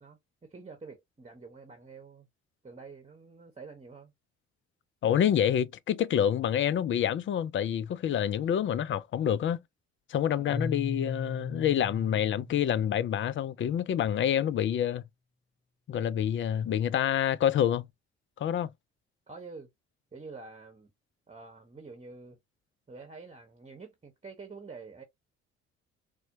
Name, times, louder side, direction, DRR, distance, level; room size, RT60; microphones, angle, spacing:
voice 1, 0.0-2.3 2.6-4.1 5.0-5.2 10.3-10.7 19.3-19.7 20.1-20.9 21.3-22.4 22.9-25.0, right 4 dB, 20° right, 1.1 m, -47 dB
voice 2, 5.0-9.6 10.1-15.0 15.9-17.9 18.4-18.7, left 9 dB, 40° left, 0.4 m, -27 dB
Keyboard (musical), 10.5-13.4, left 3 dB, 15° left, 2.0 m, -38 dB
4.2 x 2.2 x 2.6 m
hypercardioid pair, 50°, 33 cm